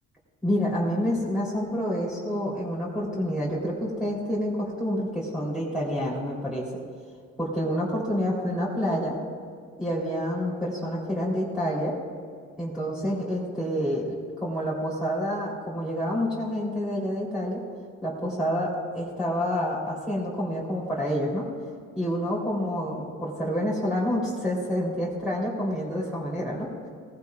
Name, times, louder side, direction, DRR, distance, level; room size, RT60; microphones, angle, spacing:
voice 1, 0.4-6.6 7.4-9.1 9.8-11.9 12.6-14.1 14.4-17.6 18.0-21.5 21.9-26.7, equal, ahead, -8 dB, 3.3 m, -28 dB
18.5 x 15.5 x 2.4 m, 2.2 s
cardioid pair, 90°, 30 cm